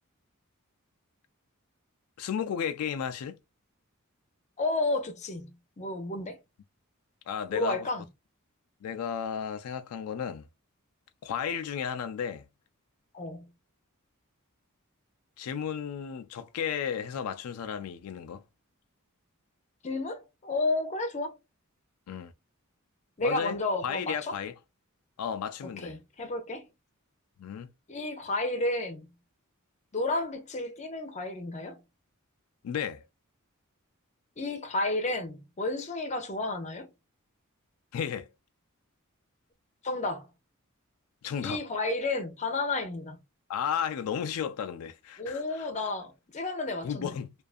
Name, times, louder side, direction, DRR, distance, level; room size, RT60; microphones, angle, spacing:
voice 1, 2.2-3.4 7.3-7.9 8.8-10.5 11.2-12.5 15.4-18.4 22.1-22.3 23.2-23.6 23.8-24.5 25.2-26.0 27.4-27.7 32.6-33.0 37.9-38.3 41.2-41.6 43.5-45.7 46.8-47.3, left 8 dB, 80° left, 0.3 m, -33 dB
voice 2, 4.6-6.4 7.5-8.0 13.1-13.5 19.8-21.4 23.2-24.3 25.8-26.6 27.9-29.1 29.9-31.8 34.4-36.9 39.8-40.3 41.4-43.2 45.2-47.2, left 2 dB, 35° left, 0.6 m, -31 dB
2.5 x 2.4 x 2.4 m
head